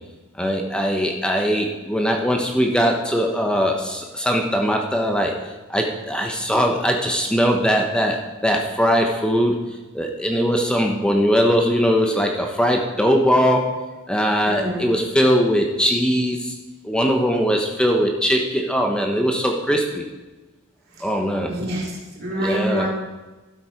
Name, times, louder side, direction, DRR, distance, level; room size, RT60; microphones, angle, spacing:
voice 1, 0.4-5.4 5.7-9.6 9.9-13.8 14.1-16.6 16.8-20.0 21.0-21.5 22.4-22.9, equal, 5° left, 2 dB, 0.8 m, -20 dB
voice 2, 14.4-14.9 21.5-21.9 22.2-22.9, right 1 dB, 45° right, -4 dB, 2.8 m, -26 dB
12.5 x 7.2 x 4.5 m, 1.2 s
head